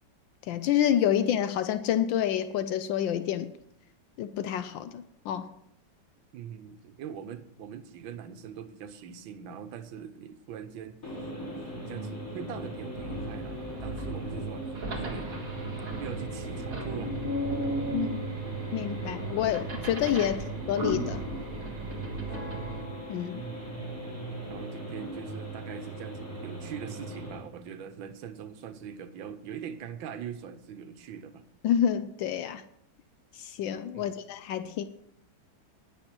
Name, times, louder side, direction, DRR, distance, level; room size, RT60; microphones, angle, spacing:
voice 1, 0.5-3.5 4.2-5.5 17.9-18.2 18.7-21.2 23.1-23.4 31.6-32.6 33.4-34.9, left 10 dB, 80° left, 11 dB, 1.3 m, -28 dB
voice 2, 6.3-11.0 11.9-15.4 16.0-17.1 20.2-20.4 23.3-23.8 24.5-31.4 33.9-34.2, right 8 dB, 90° right, 10 dB, 1.6 m, -42 dB
sound 1, 11.0-27.4, right 1 dB, 45° left, 4.4 m, -40 dB
sound 2, 12.9-22.8, right 2 dB, 45° right, 2.1 m, -35 dB
sound 3, 22.2-28.3, left 4 dB, 20° left, 5.4 m, -50 dB
18.5 x 6.6 x 4.4 m, 0.74 s
omnidirectional pair, 2.1 m